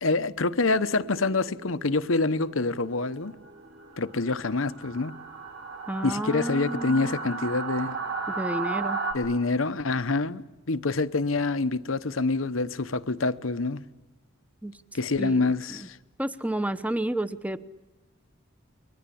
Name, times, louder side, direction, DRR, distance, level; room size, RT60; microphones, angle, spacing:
voice 1, 0.0-3.3 4.0-5.1 6.0-8.0 9.1-13.8 14.9-16.0, left 3 dB, 80° left, 1.0 m, -26 dB
sound 1, 0.7-9.1, right 4 dB, 65° right, 5.7 m, -36 dB
voice 2, 5.9-7.1 8.3-9.0 14.6-14.8 15.2-15.9 16.2-17.6, right 1 dB, 5° right, 0.9 m, -31 dB
30.0 x 23.5 x 8.6 m
head